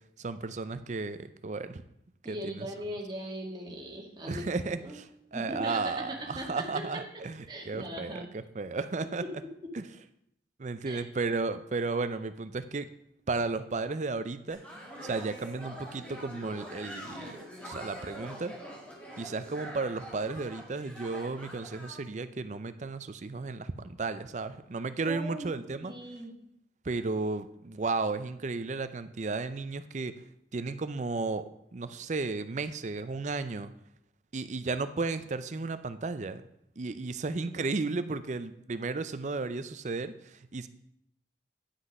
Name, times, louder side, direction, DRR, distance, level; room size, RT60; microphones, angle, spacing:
voice 1, 0.2-1.8 2.3-2.7 4.3-5.1 5.3-9.2 9.7-9.8 10.6-12.9 13.3-14.6 15.0-17.4 17.6-18.5 19.2-25.9 26.8-30.1 30.5-33.7 34.3-36.4 36.8-40.7, right 3 dB, 40° right, 12 dB, 0.5 m, -34 dB
voice 2, 2.2-4.4 4.8-5.0 5.3-7.0 7.5-8.3 9.2-9.3 10.9-11.0 25.1-25.5 25.8-26.3, right 1 dB, 25° right, -1 dB, 1.9 m, -39 dB
sound 1, 14.5-22.0, equal, 5° left, 2.1 m, -44 dB
9.9 x 6.1 x 5.3 m, 0.75 s
head